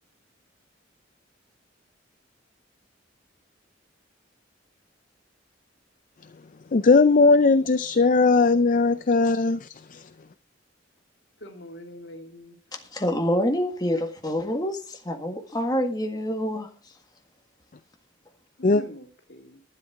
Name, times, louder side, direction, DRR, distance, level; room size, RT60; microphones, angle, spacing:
voice 1, 6.7-10.1 18.6-18.8, left 3 dB, 45° left, 0.5 m, -19 dB
voice 2, 11.4-12.6 18.6-19.6, left 1 dB, 60° left, 2.7 m, -43 dB
voice 3, 12.9-16.7, equal, 20° left, 1.7 m, -26 dB
12.0 x 10.5 x 4.8 m
head